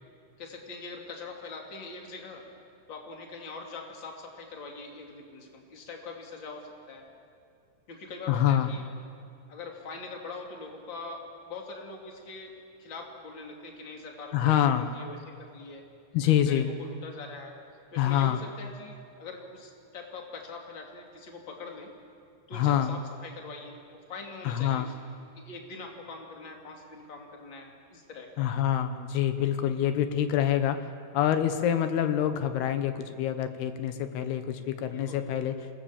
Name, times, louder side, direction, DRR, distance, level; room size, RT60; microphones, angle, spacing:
voice 1, 0.4-2.5 2.9-7.0 7.9-8.8 9.5-12.5 12.8-14.6 14.9-15.2 15.5-15.8 16.5-17.5 17.9-21.9 22.5-24.9 25.3-28.5 34.9-35.2, left 3 dB, 35° left, 1 dB, 2.7 m, -43 dB
voice 2, 8.3-8.7 14.3-14.9 16.1-16.7 18.0-18.4 22.5-22.9 24.4-24.9 28.4-30.9 31.1-35.5, left 10 dB, 75° left, 9 dB, 3.0 m, -26 dB
27.0 x 18.0 x 7.3 m, 2.3 s
omnidirectional pair, 4.8 m